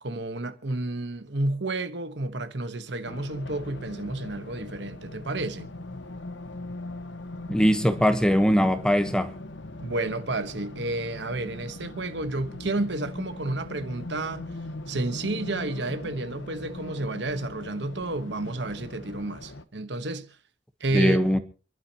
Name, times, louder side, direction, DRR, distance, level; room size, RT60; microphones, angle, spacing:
voice 1, 0.0-5.7 9.8-14.5 14.9-20.4 20.8-21.2, right 2 dB, 60° right, 1.2 m, -31 dB
Race car auto racing, 3.1-19.6, left 2 dB, 65° left, 1.1 m, -40 dB
voice 2, 7.5-9.3 20.9-21.4, equal, 5° left, 1.0 m, -21 dB
28.0 x 12.0 x 2.9 m
head